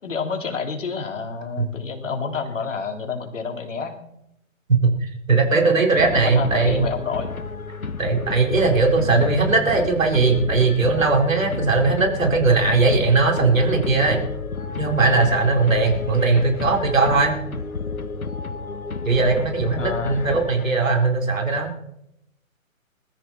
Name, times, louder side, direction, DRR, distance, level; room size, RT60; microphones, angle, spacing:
voice 1, 0.0-4.0 6.1-7.3 19.8-20.3, left 5 dB, 60° left, 4 dB, 3.3 m, -29 dB
voice 2, 5.3-6.9 8.0-14.3 14.8-17.3 19.0-21.7, right 3 dB, 70° right, 2 dB, 4.5 m, -19 dB
sound 1, 6.0-21.0, left 4 dB, 80° left, 2.0 m, -31 dB
22.0 x 13.5 x 4.4 m, 0.81 s
figure-of-eight pair, 135°, 42 cm